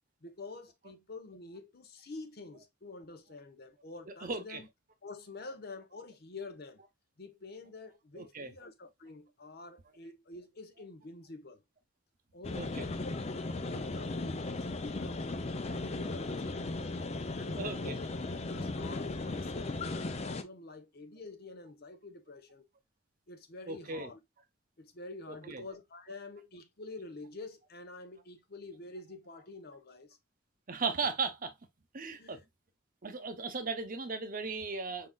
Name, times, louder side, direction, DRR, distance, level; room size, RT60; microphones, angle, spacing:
voice 1, 0.2-4.7 5.0-6.8 7.2-11.6 12.3-15.5 15.9-16.9 17.3-18.1 18.5-22.7 23.3-24.2 24.8-30.2 32.2-32.5, left 3 dB, 50° left, 0.9 m, -47 dB
voice 2, 4.2-4.6 8.2-8.5 12.5-12.9 17.6-17.9 23.7-24.1 25.5-25.6 30.7-31.5 31.9-32.4 33.0-35.1, right 4 dB, 45° right, 0.8 m, -36 dB
sound 1, 12.4-20.4, left 2 dB, 30° left, 0.5 m, -37 dB
5.1 x 3.9 x 2.3 m
head